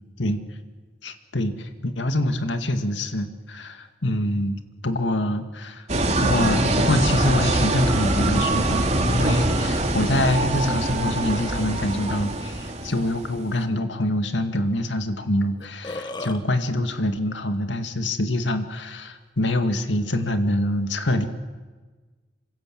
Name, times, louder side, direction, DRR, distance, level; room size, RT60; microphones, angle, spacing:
voice 1, 1.0-21.3, left 1 dB, 85° left, 7 dB, 2.1 m, -25 dB
sound 1, 5.9-13.4, right 2 dB, 40° right, 3.0 m, -23 dB
Burping eructation, 15.2-15.3 15.6-16.4, left 2 dB, 25° left, 1.6 m, -33 dB
26.5 x 25.5 x 7.8 m, 1.3 s
head